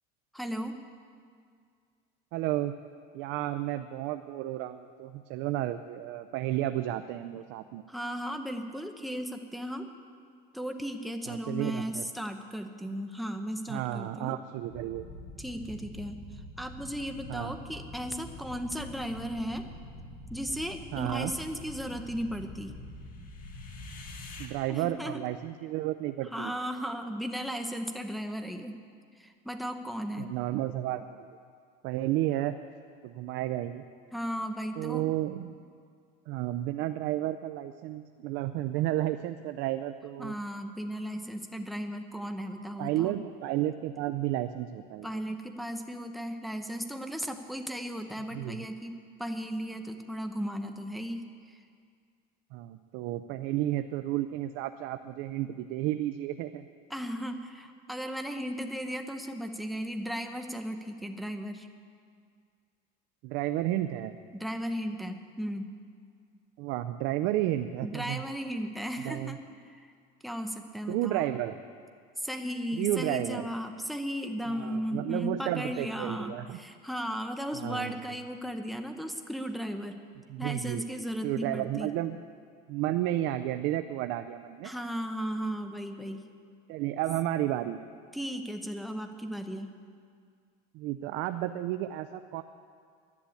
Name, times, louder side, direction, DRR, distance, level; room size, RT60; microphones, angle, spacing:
voice 1, 0.3-0.8 7.9-9.9 10.5-14.4 15.4-16.2 16.6-19.6 20.3-22.8 24.7-25.2 26.3-28.8 29.2-30.3 34.1-35.1 40.2-43.2 45.0-51.6 56.9-61.7 64.3-65.7 67.8-69.4 69.7-69.8 70.2-71.3 72.2-80.0 80.4-81.9 84.6-86.2 88.1-89.7, equal, ahead, 5 dB, 0.9 m, -36 dB
voice 2, 2.3-2.7 3.1-7.8 11.3-12.0 13.7-15.1 17.3-17.5 20.9-21.3 24.4-26.5 30.2-31.2 31.8-32.5 33.0-33.8 34.8-35.5 36.3-40.3 42.8-45.1 48.3-48.7 52.5-56.7 63.2-64.1 66.6-68.2 69.0-69.4 70.9-71.6 72.7-73.5 74.5-76.6 77.5-78.0 80.3-82.2 82.7-84.7 86.7-87.8 90.7-92.4, right 14 dB, 70° right, 9 dB, 0.6 m, -32 dB
sound 1, 14.7-24.5, left 1 dB, 45° left, 2.0 m, -45 dB
11.5 x 11.0 x 8.5 m, 2.2 s
cardioid pair, 140°, 20 cm